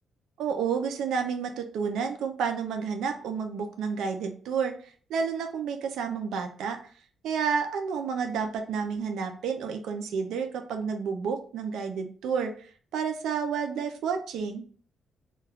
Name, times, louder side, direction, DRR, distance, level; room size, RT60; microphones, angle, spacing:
voice 1, 0.4-6.8 7.2-14.6, right 6 dB, 90° right, 6 dB, 0.4 m, -30 dB
2.2 x 2.2 x 3.4 m, 0.43 s
cardioid pair, 110°, 0 cm